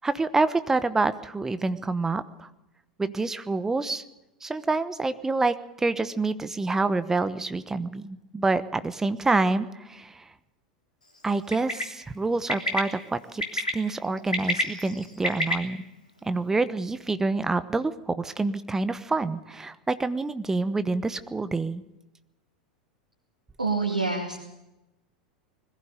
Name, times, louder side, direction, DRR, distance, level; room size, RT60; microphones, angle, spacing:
voice 1, 0.0-2.5 3.0-4.0 4.4-10.2 11.2-15.8 16.3-21.8, right 3 dB, 10° right, 13 dB, 1.1 m, -27 dB
Bird, 11.5-11.8 12.5-12.8 13.4-13.7 14.2-15.5, left 1 dB, 85° left, 3.1 m, -27 dB
voice 2, 23.6-24.4, right 3 dB, 80° right, 0 dB, 2.3 m, -26 dB
21.0 x 15.5 x 8.1 m, 0.96 s
figure-of-eight pair, 85°, 4 cm